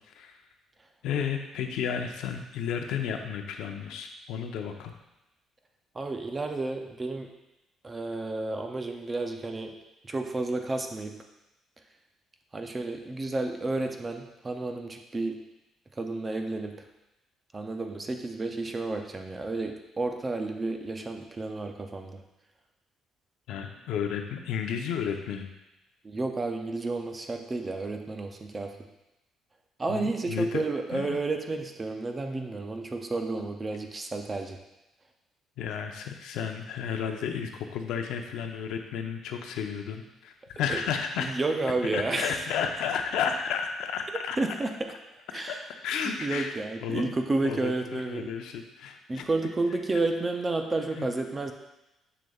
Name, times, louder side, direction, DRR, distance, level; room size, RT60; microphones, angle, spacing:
voice 1, 1.0-4.9 23.5-25.5 29.9-30.6 30.9-31.2 35.6-41.3 41.9-44.4 45.3-45.5 45.8-47.1 47.4-49.2 51.0-51.1, left 7 dB, 75° left, 5 dB, 0.6 m, -32 dB
voice 2, 5.9-7.3 7.8-9.8 10.0-11.2 12.5-15.4 16.0-16.8 17.5-22.2 26.0-28.8 29.8-34.6 40.7-40.8 41.2-42.5 44.4-44.9 45.3-45.6 46.1-48.3 49.1-51.5, right 2 dB, 15° right, 5 dB, 0.4 m, -31 dB
6.8 x 6.3 x 2.3 m, 0.95 s
cardioid pair, 180°, 0 cm